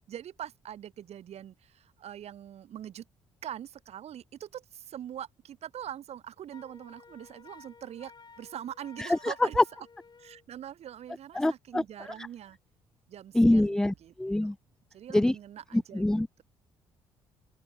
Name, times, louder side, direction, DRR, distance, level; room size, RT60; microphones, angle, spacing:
voice 1, 0.1-3.0 3.4-8.1 8.4-9.6 10.2-12.6 13.1-14.1 14.4-14.5 14.9-16.0, right 10 dB, 65° right, 3.3 m, -43 dB
Wind instrument woodwind instrument, 6.5-10.4, left 5 dB, 40° left, 7.5 m, -54 dB
voice 2, 9.0-9.6 11.3-12.1 13.3-14.6 15.1-15.3 15.7-16.3, left 1 dB, 5° left, 0.3 m, -25 dB
open air
hypercardioid pair, 55°, 12 cm